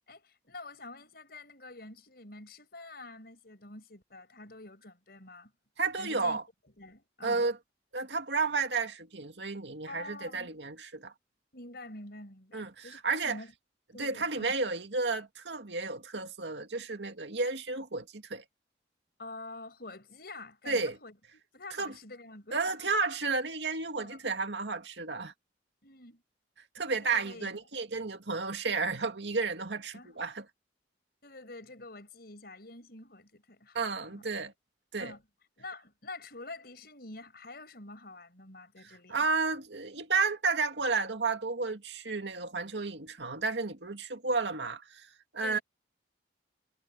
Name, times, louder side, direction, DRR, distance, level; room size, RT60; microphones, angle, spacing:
voice 1, 0.1-5.5 6.0-6.4 6.8-7.5 9.9-10.6 11.5-13.5 13.9-14.5 19.2-22.9 24.0-24.2 25.8-26.2 26.8-27.6 29.9-30.2 31.2-34.5 35.0-35.2 35.6-39.2 45.4-45.6, left 2 dB, 60° left, 5.7 m, -47 dB
voice 2, 5.8-6.4 7.2-7.6 7.9-11.1 12.5-13.4 14.0-18.4 20.7-21.0 21.8-21.9 22.5-25.3 26.7-30.4 33.7-34.5 34.9-35.1 39.1-45.1 45.3-45.6, right 4 dB, 80° right, 2.3 m, -32 dB
head